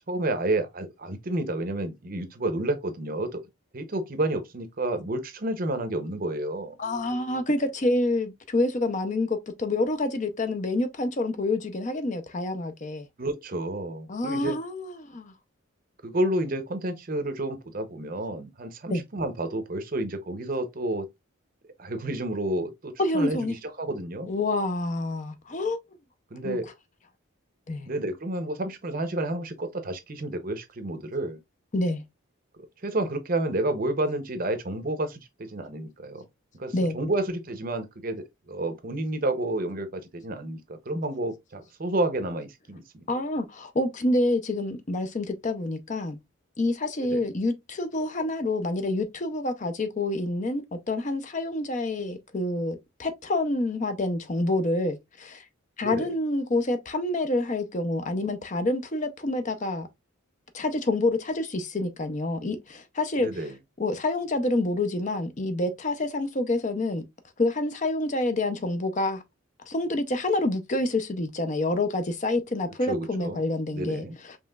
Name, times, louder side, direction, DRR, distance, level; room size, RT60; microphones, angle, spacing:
voice 1, 0.1-3.4 3.7-6.7 13.2-14.6 16.0-21.1 21.8-24.3 26.3-26.7 27.9-31.4 32.6-36.3 36.6-43.0 47.0-47.3 55.8-56.1 63.2-63.5 72.9-73.4 73.7-74.2, right 1 dB, 45° right, 0.7 m, -30 dB
voice 2, 6.8-13.1 14.1-15.3 18.9-19.0 23.0-23.6 24.3-25.8 26.4-26.6 27.7-27.9 31.7-32.0 36.7-37.0 43.1-46.2 46.6-55.4 55.8-59.9 60.5-63.3 63.8-67.0 67.4-69.2 69.7-74.4, left 2 dB, 35° left, 0.6 m, -27 dB
5.4 x 3.0 x 2.3 m
head